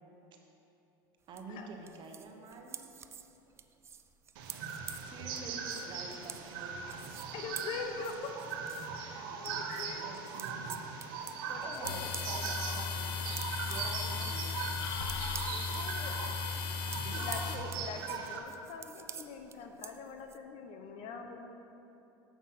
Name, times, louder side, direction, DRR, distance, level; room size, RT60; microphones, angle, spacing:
sound 1, 1.3-9.0 9.4-20.4, right 7 dB, 25° right, 0.4 m, -49 dB
voice 1, 1.3-2.8 5.0-6.8 9.1-10.8 11.6-14.7 17.0-17.3, right 3 dB, 45° right, 2 dB, 1.1 m, -48 dB
sound 2, 4.4-18.4, right 5 dB, 75° right, 0.9 m, -40 dB
voice 2, 7.3-8.3 9.0-10.1 11.5-12.3 15.5-16.2 17.2-21.4, left 5 dB, 55° left, 5 dB, 0.9 m, -43 dB
sound 3, 11.8-17.6, left 6 dB, 90° left, 0.6 m, -36 dB
7.1 x 5.9 x 5.7 m, 2.9 s
supercardioid pair, 110°, 11 cm